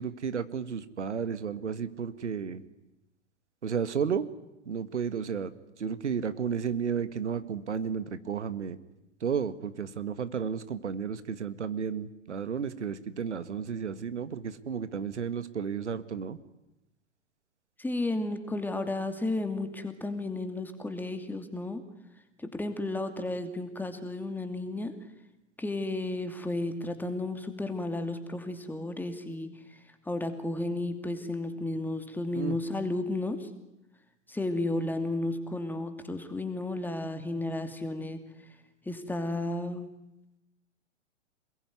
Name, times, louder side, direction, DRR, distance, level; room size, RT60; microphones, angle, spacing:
voice 1, 0.0-2.6 3.6-4.3 4.7-5.5 5.8-8.8 9.2-16.4 32.4-32.6, right 7 dB, 70° right, 12 dB, 1.8 m, -32 dB
voice 2, 17.8-21.8 22.4-24.9 25.6-29.8 30.0-33.5 34.3-38.2 38.8-39.9, left 2 dB, 5° left, 8 dB, 2.6 m, -33 dB
27.5 x 21.0 x 9.6 m, 0.93 s
figure-of-eight pair, 105°, 36 cm